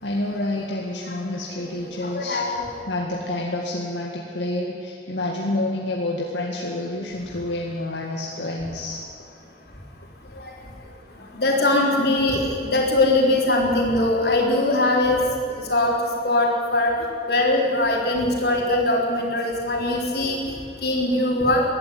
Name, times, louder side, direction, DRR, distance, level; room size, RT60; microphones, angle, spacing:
voice 1, 0.0-2.4 2.9-9.0, left 1 dB, 85° left, -2 dB, 2.1 m, -28 dB
voice 2, 1.6-2.7 10.4-10.5 11.3-15.2 15.5-15.9 16.2-16.9 17.3-21.6, left 2 dB, 60° left, -1 dB, 4.1 m, -21 dB
20.0 x 13.5 x 9.7 m, 2.6 s
head